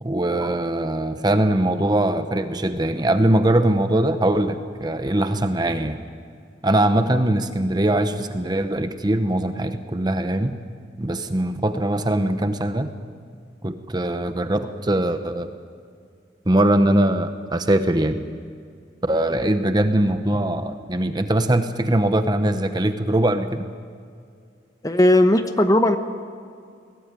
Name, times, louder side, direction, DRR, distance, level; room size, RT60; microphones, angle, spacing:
voice 1, 0.0-6.0 6.6-10.5 11.0-12.9 13.6-15.5 16.5-18.2 19.0-23.6, right 1 dB, 25° right, 9 dB, 0.9 m, -21 dB
voice 2, 24.8-26.0, left 1 dB, 20° left, 8 dB, 1.1 m, -17 dB
21.5 x 18.0 x 9.2 m, 2.2 s
head